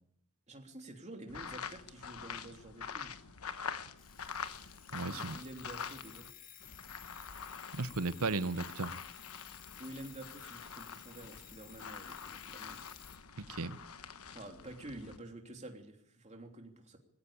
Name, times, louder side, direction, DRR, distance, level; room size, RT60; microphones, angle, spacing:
voice 1, 0.5-3.1 3.5-3.8 4.9-6.3 9.8-12.8 14.3-17.0, right 1 dB, 35° right, 3.2 m, -49 dB
sound 1, 1.3-6.3 6.6-15.2, left 6 dB, 85° left, 1.3 m, -46 dB
Alarm, 4.0-13.2, left 11 dB, 40° left, 1.8 m, -55 dB
voice 2, 4.9-5.4 7.7-9.0 13.4-13.8, right 3 dB, 85° right, 0.9 m, -35 dB
20.5 x 16.0 x 8.7 m
head